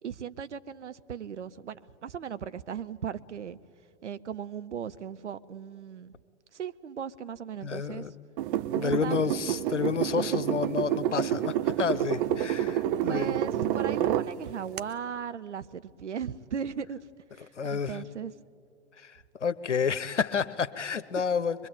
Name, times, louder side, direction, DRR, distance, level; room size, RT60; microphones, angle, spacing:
voice 1, 0.0-3.6 4.0-6.1 6.5-8.0 8.8-9.4 13.1-17.0 17.3-18.3 21.2-21.3, right 8 dB, 80° right, 13 dB, 0.8 m, -37 dB
voice 2, 7.6-8.1 8.7-13.4 17.6-18.0 19.0-21.7, left 6 dB, 85° left, 15 dB, 1.0 m, -30 dB
sound 1, 8.4-14.3 14.8-14.9, right 12 dB, 50° right, 0.9 m, -28 dB
23.5 x 22.5 x 8.8 m, 2.3 s
figure-of-eight pair, 95°, 35 cm